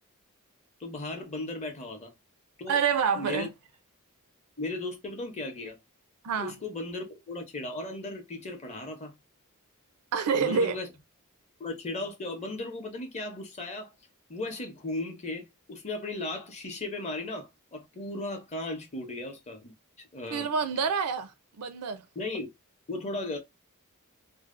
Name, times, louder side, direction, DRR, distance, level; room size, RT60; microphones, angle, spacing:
voice 1, 0.8-2.1 2.6-2.8 3.2-3.5 4.6-5.8 6.4-9.1 10.4-10.9 11.6-13.9 14.3-19.7 20.1-20.5 22.2-22.5 22.9-23.4, left 2 dB, 30° left, 0.7 m, -36 dB
voice 2, 2.7-3.5 6.2-6.5 10.1-10.8 20.3-21.3 21.6-22.0, right 6 dB, 75° right, 0.5 m, -27 dB
2.6 x 2.0 x 2.4 m
head